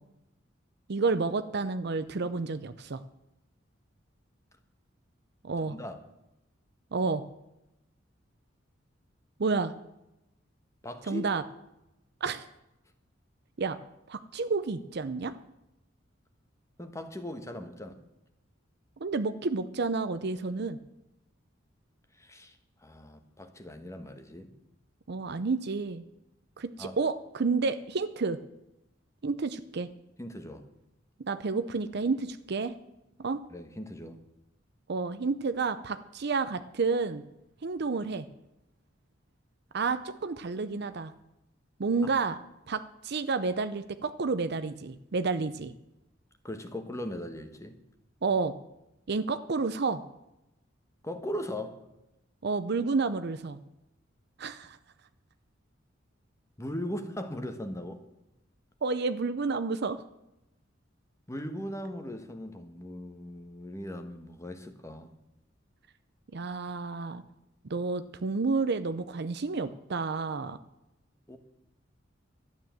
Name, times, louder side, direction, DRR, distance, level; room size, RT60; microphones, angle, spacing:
voice 1, 0.9-3.0 5.4-5.8 6.9-7.2 9.4-9.7 11.1-11.4 12.2-12.5 13.6-13.8 14.1-15.3 19.0-20.8 25.1-26.0 26.6-28.4 29.2-29.9 31.2-32.7 33.2-33.4 34.9-37.2 37.6-38.3 39.7-41.1 41.8-42.4 42.7-45.7 48.2-48.5 49.1-50.0 52.4-53.6 54.4-54.8 58.8-60.0 66.3-67.2 67.6-70.6, right 4 dB, 60° right, 11 dB, 0.6 m, -30 dB
voice 2, 5.7-6.0 10.8-11.3 16.8-18.0 22.1-22.6 22.8-24.5 26.8-27.0 30.2-30.6 33.5-34.2 42.0-42.1 46.4-47.8 51.0-51.8 56.6-58.0 61.3-65.1 71.3-71.4, equal, 15° left, 7 dB, 1.3 m, -39 dB
12.5 x 9.5 x 7.6 m, 0.89 s
head